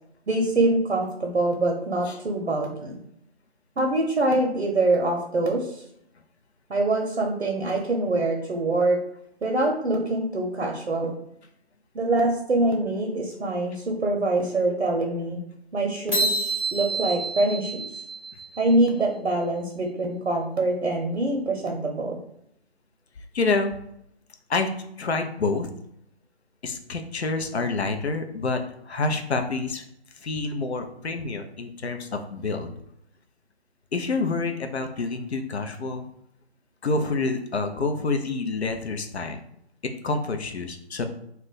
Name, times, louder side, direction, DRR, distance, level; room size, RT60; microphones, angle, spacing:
voice 1, 0.3-3.0 3.8-5.8 6.7-9.0 9.4-11.1 11.9-15.4 15.7-17.8 18.6-22.2, right 2 dB, 90° right, 0 dB, 0.7 m, -24 dB
sound 1, 16.1-18.7, right 1 dB, 5° left, 0.7 m, -28 dB
voice 2, 23.3-23.8 24.5-24.7 25.0-25.7 26.6-28.6 28.9-29.8 30.2-32.7 33.9-36.1 36.8-39.4 40.0-41.0, left 3 dB, 75° left, 6 dB, 0.6 m, -27 dB
2.4 x 2.1 x 3.8 m, 0.74 s
figure-of-eight pair, 155°, 33 cm